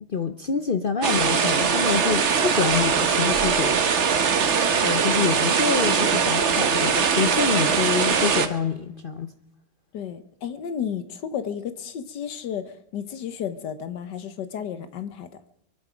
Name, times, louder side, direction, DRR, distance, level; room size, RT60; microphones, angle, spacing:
voice 1, 0.0-4.2 4.8-9.3, left 6 dB, 50° left, 0.6 m, -27 dB
sound 1, 1.0-8.5, right 6 dB, 45° right, 1.2 m, -21 dB
voice 2, 9.9-15.3, left 8 dB, 75° left, 1.6 m, -32 dB
23.0 x 11.0 x 5.1 m
omnidirectional pair, 1.9 m